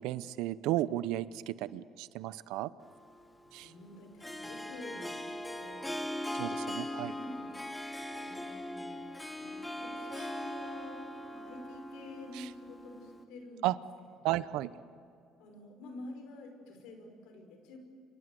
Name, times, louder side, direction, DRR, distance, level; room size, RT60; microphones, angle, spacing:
voice 1, 0.0-2.7 3.5-3.7 6.3-7.1 12.3-12.5 13.6-13.8 14.2-14.7, right 15 dB, 85° right, 17 dB, 0.7 m, -34 dB
Harp, 2.8-13.2, left 1 dB, 10° left, 2.2 m, -40 dB
voice 2, 3.6-5.9 6.6-7.5 8.2-13.7 14.2-14.5 15.4-17.8, left 2 dB, 85° left, 5 dB, 5.1 m, -49 dB
28.5 x 25.5 x 7.8 m, 2.5 s
cardioid pair, 105°, 0 cm